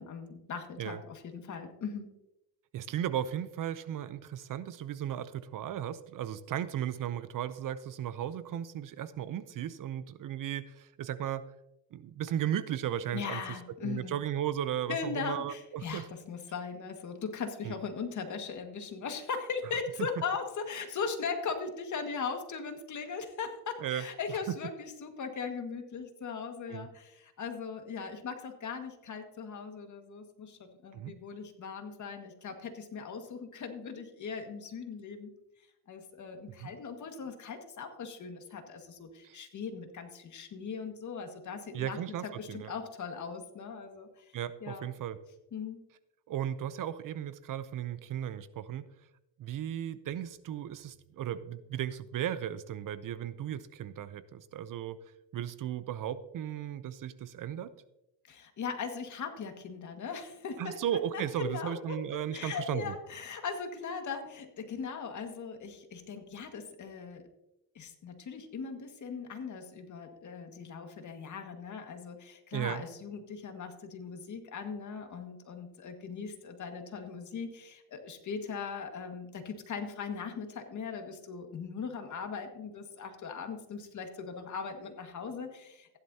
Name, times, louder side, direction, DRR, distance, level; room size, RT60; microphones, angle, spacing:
voice 1, 0.0-2.1 13.1-14.2 14.9-35.3 35.9-44.3 44.6-44.9 45.5-45.8 58.3-60.8 61.1-67.2 67.8-86.0, left 5 dB, 40° left, 5 dB, 1.9 m, -39 dB
voice 2, 2.7-11.4 11.9-13.4 13.8-16.1 17.7-17.8 23.8-24.0 26.7-26.9 30.9-31.1 36.6-36.7 39.2-39.4 41.7-42.7 44.3-45.2 46.3-48.9 49.4-55.0 55.3-57.7 60.6-62.9 72.5-72.8, right 10 dB, 45° right, 14 dB, 0.7 m, -35 dB
15.5 x 11.0 x 2.8 m, 0.89 s
cardioid pair, 115°, 44 cm